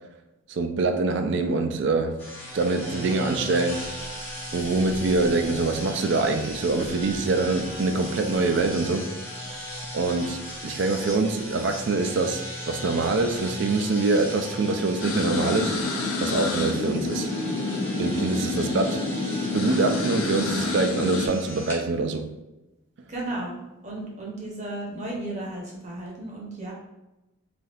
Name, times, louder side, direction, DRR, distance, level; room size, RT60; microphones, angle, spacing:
voice 1, 0.5-2.2 2.5-3.9 4.5-9.1 9.9-15.8 16.2-17.3 18.0-19.1 19.5-22.3, right 3 dB, 60° right, 0.3 m, -25 dB
sound 1, 2.2-21.8, equal, 10° left, 0.7 m, -37 dB
sound 2, 15.0-21.3, left 2 dB, 80° left, 0.5 m, -28 dB
voice 2, 23.1-23.6 23.8-26.7, right 1 dB, 35° right, 0.8 m, -34 dB
3.4 x 2.7 x 2.4 m
head